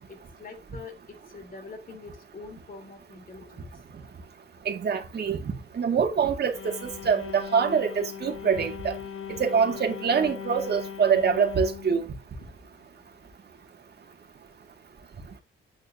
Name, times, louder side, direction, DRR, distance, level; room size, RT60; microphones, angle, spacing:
voice 1, 0.1-3.7, left 4 dB, 45° left, 3.3 m, -45 dB
voice 2, 4.7-9.0 9.4-12.1, right 6 dB, 55° right, 2.0 m, -25 dB
sound 1, 6.5-13.3, left 9 dB, 90° left, 1.2 m, -39 dB
9.6 x 7.9 x 2.7 m
wide cardioid pair, 135°, 21 cm